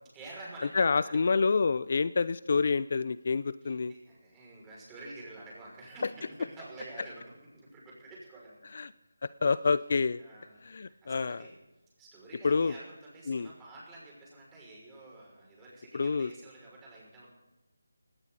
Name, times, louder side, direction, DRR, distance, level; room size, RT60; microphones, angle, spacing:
voice 1, 0.1-1.4 3.6-8.7 10.2-11.5 12.0-17.3, right 2 dB, 10° right, -4 dB, 6.0 m, -49 dB
voice 2, 0.7-3.9 8.7-8.9 9.2-10.2 10.6-11.4 12.4-12.7 13.3-13.5 15.9-16.3, left 4 dB, 45° left, 16 dB, 0.5 m, -27 dB
19.0 x 18.0 x 4.1 m, 1.1 s
figure-of-eight pair, 160°, 0 cm